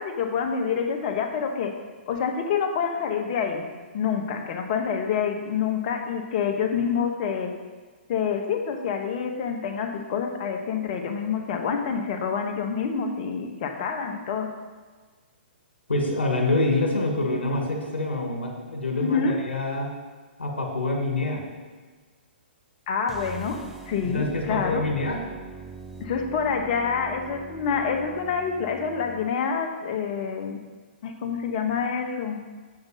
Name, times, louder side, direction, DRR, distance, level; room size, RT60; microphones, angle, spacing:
voice 1, 0.0-1.7 2.1-3.7 3.9-7.6 8.1-14.5 19.0-19.4 22.9-24.8 26.0-30.6 31.0-32.4, left 6 dB, 45° left, 4 dB, 1.2 m, -27 dB
voice 2, 15.9-19.9 20.4-21.4 24.1-25.2, left 2 dB, 90° left, 1 dB, 1.7 m, -26 dB
sound 1, 23.0-29.3, right 4 dB, 5° right, 0.6 m, -43 dB
7.8 x 5.3 x 5.7 m, 1.4 s
hypercardioid pair, 130°, 6 cm